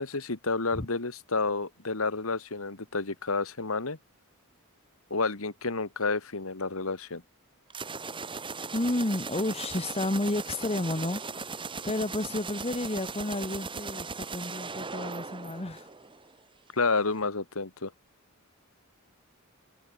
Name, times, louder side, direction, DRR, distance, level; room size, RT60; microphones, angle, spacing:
voice 1, 0.0-4.0 5.1-7.2 16.7-17.9, left 3 dB, 70° left, 1.8 m, -30 dB
sound 1, 7.7-16.3, right 4 dB, 25° right, 1.9 m, -38 dB
voice 2, 8.7-11.2 11.8-15.9, left 1 dB, 30° left, 1.3 m, -31 dB
open air
head